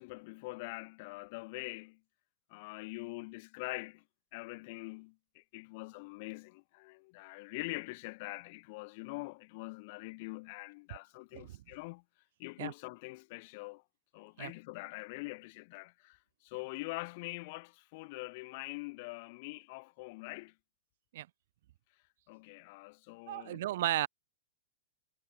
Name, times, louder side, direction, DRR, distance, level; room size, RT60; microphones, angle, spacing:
voice 1, 0.0-2.0 2.5-4.0 4.3-12.0 12.4-13.8 14.1-20.5 22.3-23.6, left 26 dB, 55° left, 3.1 m, -44 dB
voice 2, 23.3-24.1, right 14 dB, 65° right, 0.3 m, -34 dB
hypercardioid pair, 130°, 0 cm